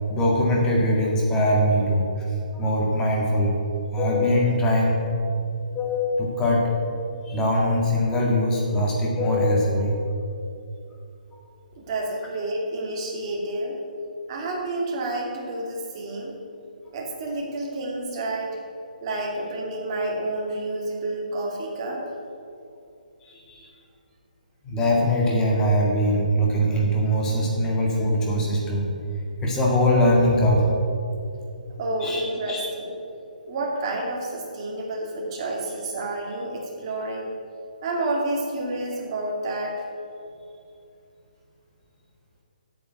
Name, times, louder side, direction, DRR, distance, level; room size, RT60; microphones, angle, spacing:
voice 1, 0.1-2.1 2.5-3.5 3.9-5.0 5.7-6.7 7.3-9.9 23.2-23.6 24.7-28.9 29.4-30.7 32.0-32.2 32.5-32.6, equal, 10° left, -2 dB, 1.9 m, -22 dB
voice 2, 11.8-13.8 14.3-16.3 16.9-18.6 19.0-22.0 31.8-32.9 33.4-37.3 37.8-39.9, right 2 dB, 35° right, -1 dB, 2.3 m, -29 dB
8.6 x 7.3 x 8.1 m, 2.6 s
hypercardioid pair, 155°, 5 cm